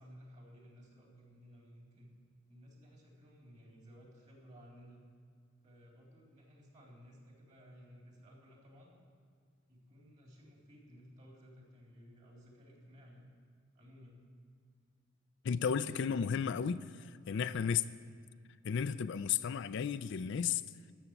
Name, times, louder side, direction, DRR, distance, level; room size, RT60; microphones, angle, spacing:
voice 1, 0.0-2.1 2.5-5.0 5.6-8.9 9.7-13.3 13.7-14.2 17.3-17.5, equal, 40° right, 3.7 m, -57 dB
voice 2, 15.4-17.8 18.6-20.6, left 7 dB, 65° left, 0.4 m, -33 dB
13.5 x 7.1 x 9.0 m
head